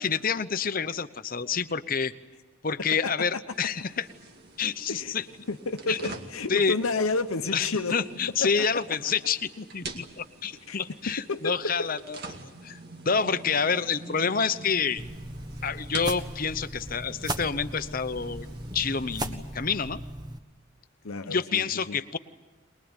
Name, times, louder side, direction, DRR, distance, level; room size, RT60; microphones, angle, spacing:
voice 1, 0.0-2.1 2.6-4.1 4.6-5.2 5.9-6.0 6.5-6.8 7.5-12.8 13.0-15.0 15.6-18.5 18.7-20.0 21.2-22.2, left 6 dB, 40° left, 12 dB, 0.9 m, -28 dB
voice 2, 3.0-3.4 4.9-5.1 5.5-7.9 8.4-8.7 10.7-10.8 11.3-11.7 21.0-22.0, left 3 dB, 80° left, 6 dB, 1.0 m, -30 dB
sound 1, 3.5-19.3, right 3 dB, 50° right, 2.2 m, -46 dB
sound 2, 15.0-20.4, right 1 dB, 20° right, 1.3 m, -37 dB
23.0 x 21.5 x 9.0 m, 1.3 s
head